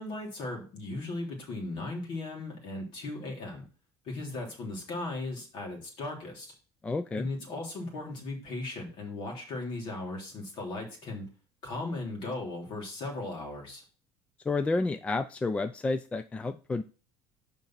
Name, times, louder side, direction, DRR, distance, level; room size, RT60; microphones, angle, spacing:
voice 1, 0.0-3.7 4.0-6.5 7.2-11.3 11.6-13.8, left 2 dB, 55° left, 0 dB, 3.3 m, -37 dB
voice 2, 6.8-7.3 14.5-16.8, left 3 dB, 10° left, 11 dB, 0.4 m, -30 dB
6.7 x 5.2 x 5.8 m, 0.37 s
cardioid pair, 145°, 10 cm